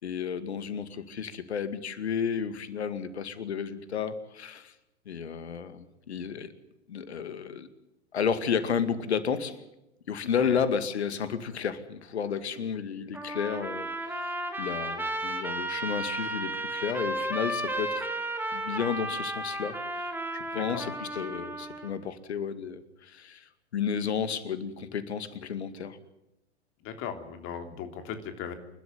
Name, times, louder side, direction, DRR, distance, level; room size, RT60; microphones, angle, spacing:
voice 1, 0.0-4.7 5.1-6.5 6.9-7.7 8.1-9.6 10.1-18.1 18.5-26.0, left 7 dB, 70° left, 12 dB, 2.3 m, -32 dB
Trumpet, 13.1-21.9, right 1 dB, 5° right, 2.8 m, -33 dB
voice 2, 26.8-28.5, left 8 dB, 35° left, 7 dB, 3.3 m, -38 dB
28.5 x 13.0 x 9.5 m, 0.91 s
figure-of-eight pair, 100°, 34 cm